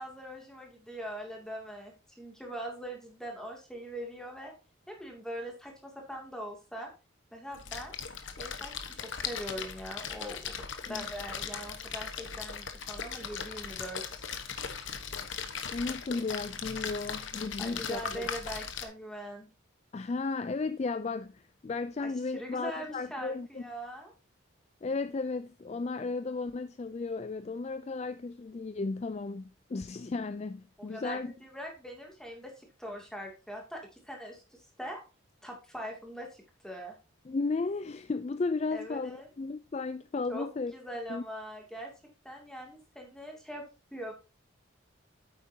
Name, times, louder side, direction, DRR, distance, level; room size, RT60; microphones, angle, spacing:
voice 1, 0.0-4.5 4.9-6.9 7.3-7.9 8.4-10.5 10.8-14.4 17.6-19.5 22.0-24.1 30.8-35.0 35.4-37.0 38.7-39.3 40.3-41.9 42.2-43.6 43.9-44.1, equal, 5° left, 2.4 m, -42 dB
Splash splatter, 7.5-18.9, left 6 dB, 65° left, 1.1 m, -39 dB
voice 2, 15.7-18.3 19.9-23.6 24.8-31.3 37.2-40.7 41.1-41.2, left 3 dB, 30° left, 0.3 m, -34 dB
9.3 x 8.2 x 2.7 m
head